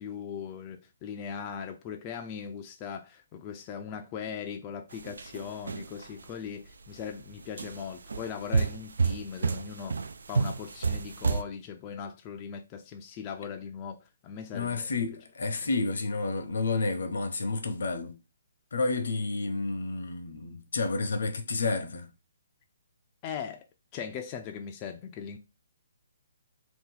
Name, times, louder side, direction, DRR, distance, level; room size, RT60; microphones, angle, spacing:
voice 1, 0.0-10.0 10.3-14.0 14.2-14.9 23.2-23.6 23.9-25.4, left 7 dB, 25° left, 0.3 m, -39 dB
sound 1, 4.9-6.3 6.8-7.1 7.6-11.4, right 4 dB, 85° right, 0.3 m, -30 dB
voice 2, 14.5-18.1 18.7-22.1, left 3 dB, 75° left, 0.7 m, -30 dB
2.8 x 2.3 x 3.8 m
hypercardioid pair, 160°, 0 cm